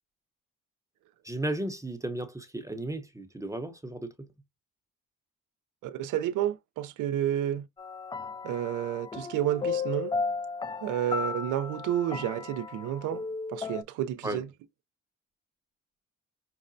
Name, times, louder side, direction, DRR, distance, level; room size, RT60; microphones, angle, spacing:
voice 1, 1.2-4.1 14.2-14.4, right 1 dB, 10° right, 0.8 m, -34 dB
voice 2, 5.8-7.6 8.4-10.1 10.8-13.2 13.5-14.5, right 11 dB, 85° right, 0.5 m, -30 dB
sound 1, 7.8-13.8, left 5 dB, 15° left, 0.3 m, -35 dB
5.8 x 2.1 x 2.5 m
cardioid pair, 90°, 30 cm